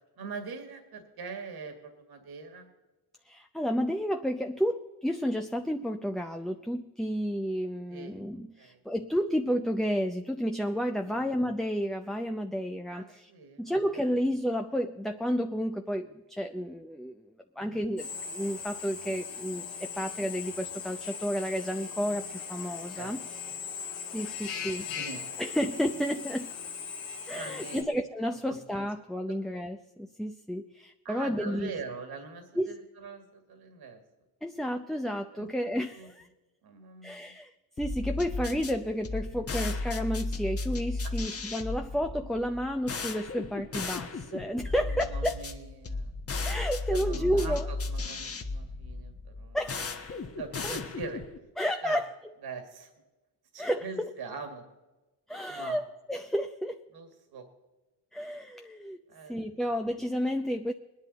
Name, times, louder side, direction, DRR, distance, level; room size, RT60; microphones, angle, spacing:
voice 1, 0.2-2.7 7.9-8.2 8.6-8.8 11.0-11.2 12.9-14.1 17.6-17.8 22.9-23.2 23.7-23.8 24.5-25.4 27.3-27.9 28.5-28.6 29.3-29.4 31.0-34.0 35.3-36.1 36.6-37.3 41.0-41.1 44.6-46.1 46.9-49.6 50.4-51.2 51.8-52.0 52.4-52.9 53.5-54.6 55.5-55.8 56.9-57.5 59.1-59.4, right 4 dB, 60° right, 6 dB, 2.2 m, -43 dB
voice 2, 3.2-13.3 13.6-17.2 17.6-23.2 24.1-24.9 25.4-26.5 27.3-31.7 32.6-32.8 34.4-36.3 37.0-45.4 46.4-47.7 49.5-50.2 50.6-50.7 51.6-52.1 53.6-54.1 55.3-56.8 58.1-59.0 59.3-60.7, equal, ahead, 5 dB, 0.6 m, -31 dB
Drill, 18.0-27.8, left 6 dB, 85° left, 1.6 m, -39 dB
sound 1, 37.8-51.4, left 3 dB, 30° left, 1.3 m, -35 dB
20.5 x 10.5 x 4.1 m, 1.1 s
supercardioid pair, 65°, 43 cm